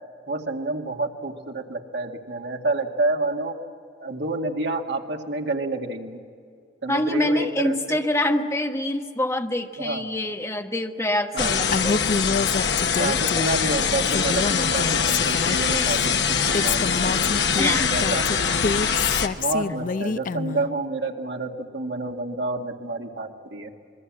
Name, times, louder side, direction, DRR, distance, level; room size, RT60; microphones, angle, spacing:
voice 1, 0.3-3.5 4.0-6.2 6.8-8.0 9.8-10.0 11.3-11.5 13.0-17.3 17.9-18.3 19.4-23.7, right 2 dB, 80° right, 2 dB, 2.1 m, -29 dB
voice 2, 6.9-12.0 17.6-17.9, left 1 dB, 15° left, 4 dB, 1.3 m, -25 dB
sound 1, 11.4-19.3, left 6 dB, 75° left, 1.3 m, -23 dB
Female speech woman speaking, 11.7-13.7 14.1-16.1 16.5-20.7, left 4 dB, 50° left, 0.5 m, -27 dB
26.5 x 22.0 x 7.5 m, 2.3 s
head